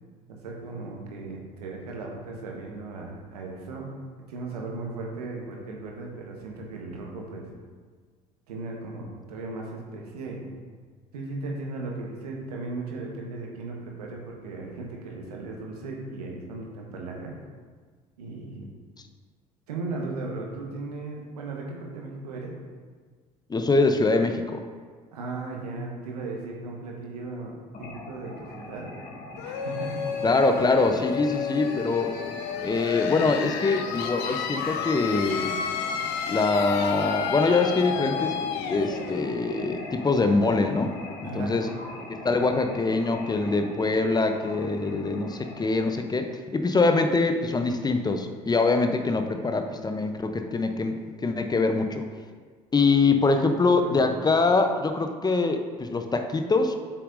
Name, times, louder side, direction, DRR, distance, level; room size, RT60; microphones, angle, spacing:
voice 1, 0.3-3.9 4.3-7.5 8.5-10.5 11.1-17.3 18.2-18.7 19.7-22.6 25.1-28.9 29.4-30.0 41.2-41.8 53.3-54.1, right 3 dB, 80° right, 0 dB, 1.2 m, -37 dB
voice 2, 23.5-24.6 30.2-32.1 32.6-35.6 36.3-38.4 38.7-41.0 41.3-41.7 42.2-52.1 52.7-56.8, left 3 dB, 20° left, 7 dB, 0.6 m, -24 dB
sound 1, 27.7-45.9, left 2 dB, 45° left, 1.7 m, -41 dB
sound 2, 29.4-40.9, left 7 dB, 65° left, 0.6 m, -32 dB
7.8 x 6.2 x 2.6 m, 1.5 s
hypercardioid pair, 60°, 20 cm